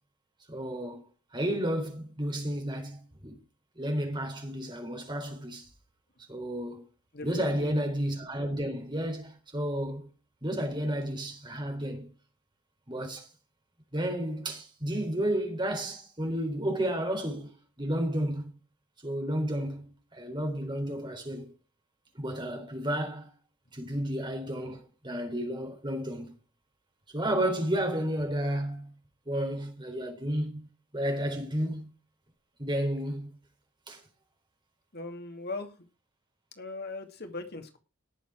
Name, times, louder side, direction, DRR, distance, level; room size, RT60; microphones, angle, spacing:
voice 1, 0.5-1.0 1.3-3.4 3.8-5.7 6.3-6.8 7.2-10.1 10.4-12.1 12.9-13.3 13.9-17.5 17.8-18.5 19.0-21.5 22.2-23.3 23.7-26.3 27.1-28.9 29.3-30.7 30.9-31.9 32.6-33.3 33.9-34.0, right 1 dB, 20° right, 3.9 m, -32 dB
voice 2, 7.1-7.7 34.9-35.9 36.6-37.8, left 2 dB, 50° left, 2.5 m, -39 dB
18.0 x 7.3 x 4.8 m
head